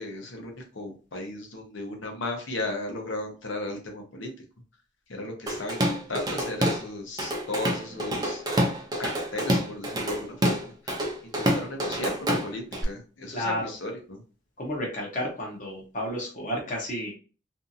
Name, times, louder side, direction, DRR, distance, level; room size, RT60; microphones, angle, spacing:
voice 1, 0.0-4.3 5.1-8.4 9.0-14.2, left 2 dB, 75° left, 2 dB, 0.8 m, -35 dB
Drum kit / Drum, 5.5-6.9 7.2-12.8, equal, 20° right, 0.4 m, -27 dB
voice 2, 13.3-13.7 14.6-17.1, left 1 dB, 40° left, -1 dB, 0.7 m, -31 dB
2.6 x 2.4 x 2.6 m, 0.36 s
head